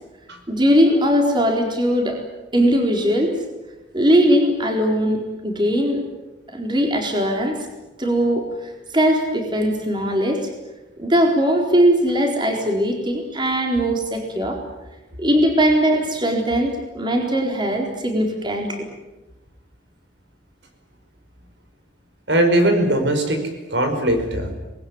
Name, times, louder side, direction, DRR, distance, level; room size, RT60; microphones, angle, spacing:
voice 1, 0.5-2.2 2.5-3.4 3.9-6.0 6.5-7.6 8.0-8.5 8.9-10.4 11.0-14.6 15.2-18.9, equal, 25° right, 2 dB, 4.1 m, -19 dB
voice 2, 22.3-24.5, right 1 dB, 75° right, 6 dB, 5.2 m, -20 dB
27.0 x 20.5 x 9.7 m, 1.1 s
head